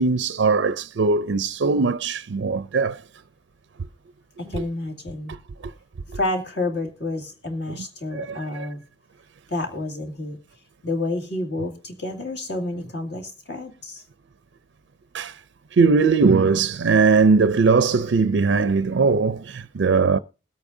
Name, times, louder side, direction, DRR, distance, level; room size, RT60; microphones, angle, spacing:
voice 1, 0.0-3.0 4.5-4.6 5.3-5.4 7.7-7.8 8.1-8.7 15.1-15.4 15.7-20.2, right 4 dB, 65° right, 0.4 m, -20 dB
voice 2, 4.4-5.4 6.1-8.8 9.5-10.4 10.8-14.0, left 2 dB, 55° left, 2.3 m, -29 dB
21.0 x 8.5 x 2.6 m
head